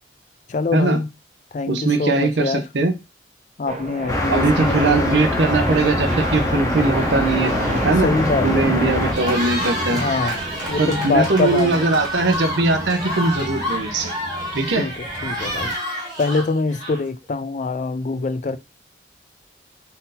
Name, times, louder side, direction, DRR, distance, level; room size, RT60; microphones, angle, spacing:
voice 1, 0.5-1.1 1.5-2.6 3.6-5.1 8.0-8.8 9.9-10.4 10.7-11.9 14.8-15.7 16.2-18.6, left 3 dB, 40° left, 0.3 m, -24 dB
voice 2, 1.7-2.9 4.3-7.5 7.8-8.1 8.4-10.0 10.8-14.1 14.5-14.8, right 3 dB, 75° right, 0.7 m, -20 dB
sound 1, 3.7-15.7, right 1 dB, 40° right, 0.7 m, -31 dB
sound 2, 4.1-9.1, left 1 dB, 20° left, 0.7 m, -23 dB
Cheering, 9.0-17.2, equal, 25° right, 1.4 m, -28 dB
4.0 x 2.6 x 3.8 m
head